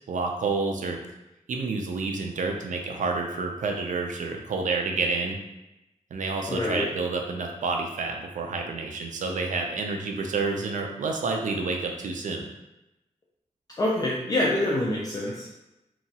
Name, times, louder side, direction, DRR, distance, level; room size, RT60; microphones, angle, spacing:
voice 1, 0.1-1.0 1.5-5.4 6.1-12.5, right 3 dB, 75° right, 2 dB, 0.4 m, -29 dB
voice 2, 6.5-6.8 13.8-15.5, left 1 dB, 30° left, -5 dB, 0.4 m, -26 dB
2.9 x 2.2 x 2.7 m, 0.94 s
wide cardioid pair, 160°, 13 cm